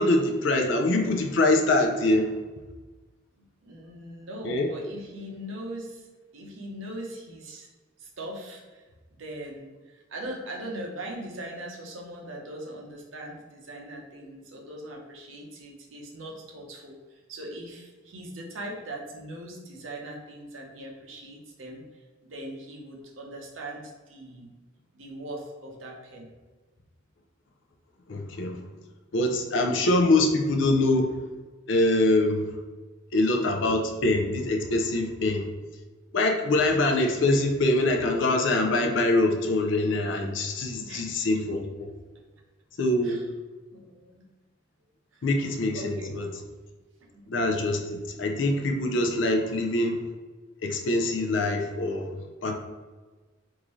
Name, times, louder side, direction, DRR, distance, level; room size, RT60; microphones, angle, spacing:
voice 1, 0.0-2.3 4.4-4.7 28.1-28.6 29.1-31.1 31.7-32.4 33.1-35.5 36.1-41.9 42.8-43.2 45.2-46.3 47.3-50.0 50.6-52.1 52.4-52.5, left 2 dB, 65° left, 3 dB, 0.5 m, -24 dB
voice 2, 3.4-6.1 6.3-7.7 8.0-8.8 9.2-22.0 22.3-24.5 24.9-26.3 40.7-41.3 42.3-42.4 43.0-43.2 43.7-44.2 45.1-45.2 45.7-46.1 47.1-47.3, right 1 dB, 85° right, 0 dB, 0.8 m, -40 dB
3.6 x 2.6 x 3.0 m, 1.3 s
head